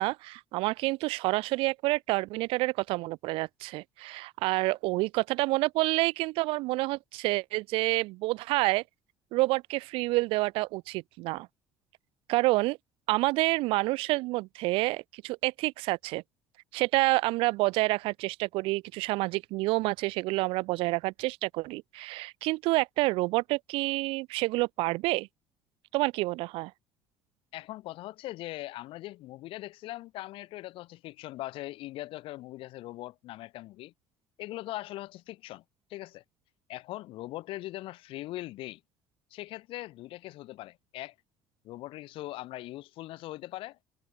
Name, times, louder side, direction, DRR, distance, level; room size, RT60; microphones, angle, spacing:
voice 1, 0.0-8.8 9.3-11.5 12.3-12.8 13.1-16.2 16.7-25.3 25.9-26.7, right 21 dB, 75° right, 0.5 m, -28 dB
voice 2, 27.5-33.9 34.4-35.6 35.9-36.2 36.7-38.8 39.3-41.2 41.6-43.8, left 17 dB, 70° left, 5.2 m, -40 dB
supercardioid pair, 95°, 9 cm